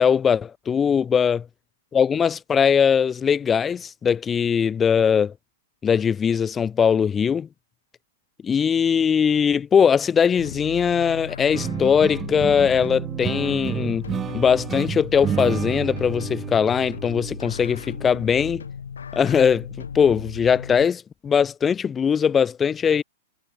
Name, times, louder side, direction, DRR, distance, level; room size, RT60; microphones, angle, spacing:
voice 1, 0.0-1.5 1.9-5.3 5.8-7.5 8.4-18.6 19.1-23.0, left 7 dB, 20° left, 1.4 m, -20 dB
sound 1, 10.4-20.9, left 7 dB, 75° left, 4.3 m, -36 dB
sound 2, 11.5-18.1, right 8 dB, 25° right, 1.3 m, -31 dB
figure-of-eight pair, 105°, 0 cm